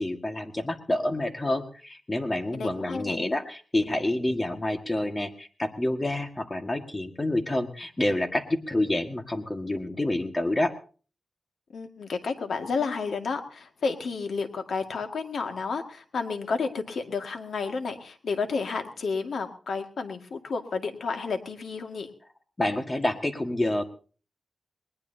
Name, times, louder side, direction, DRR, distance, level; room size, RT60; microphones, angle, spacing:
voice 1, 0.0-10.7 22.6-23.8, left 1 dB, 20° left, 6 dB, 1.7 m, -28 dB
voice 2, 2.5-3.2 11.7-22.1, left 4 dB, 85° left, 5 dB, 1.9 m, -31 dB
20.5 x 20.5 x 2.8 m, 0.39 s
wide cardioid pair, 115°, 0 cm